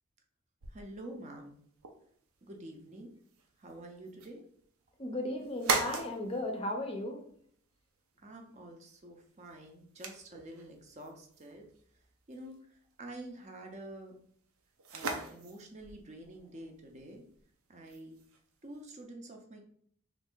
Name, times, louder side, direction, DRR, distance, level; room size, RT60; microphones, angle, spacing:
sound 1, 0.6-19.0, right 4 dB, 80° right, 0.6 m, -42 dB
voice 1, 0.7-1.6 2.4-3.1 3.6-4.4 8.2-11.7 12.3-14.1 14.9-17.2 17.7-18.2 18.6-19.6, right 1 dB, 35° right, 2 dB, 0.5 m, -48 dB
voice 2, 5.0-7.2, left 1 dB, 25° left, 3 dB, 0.5 m, -35 dB
3.2 x 2.5 x 3.6 m, 0.63 s
head